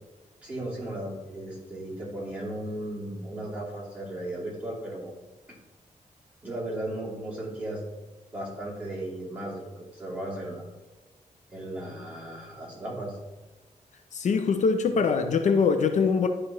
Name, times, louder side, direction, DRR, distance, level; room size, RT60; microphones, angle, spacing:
voice 1, 0.4-5.1 5.5-5.6 6.4-7.8 8.3-9.6 9.9-10.7 11.5-13.2, right 1 dB, 10° right, 2.6 m, -36 dB
voice 2, 14.1-16.3, left 5 dB, 65° left, 0.5 m, -23 dB
11.5 x 5.0 x 3.0 m
wide cardioid pair, 135°, 13 cm